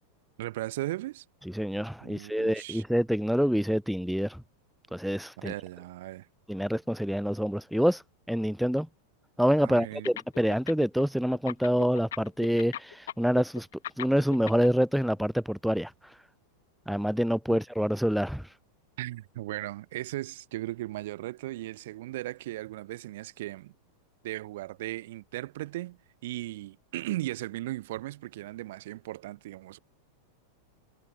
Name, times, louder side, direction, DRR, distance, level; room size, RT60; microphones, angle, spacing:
voice 1, 0.4-1.2 2.0-2.8 5.4-6.3 9.6-10.1 17.5-17.6 19.0-23.7 24.2-29.8, right 16 dB, 55° right, 1.0 m, -37 dB
voice 2, 1.5-4.4 4.9-5.5 6.5-8.0 8.3-8.9 9.4-13.7 14.0-15.9 16.9-18.5, equal, ahead, 0.5 m, -26 dB
sound 1, 10.0-11.0 11.3-14.7, left 12 dB, 60° left, 1.4 m, -38 dB
figure-of-eight pair, 90°, 0 cm